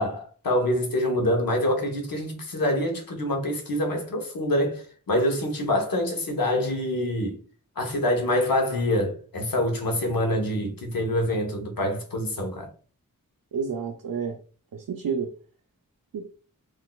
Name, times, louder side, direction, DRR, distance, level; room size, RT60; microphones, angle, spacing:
voice 1, 0.0-7.4 7.8-12.7, left 1 dB, 80° left, 0.9 m, -26 dB
voice 2, 13.5-14.4 14.7-15.3 16.1-16.3, right 6 dB, 85° right, 0.5 m, -30 dB
3.9 x 2.5 x 2.3 m
wide cardioid pair, 55°, 34 cm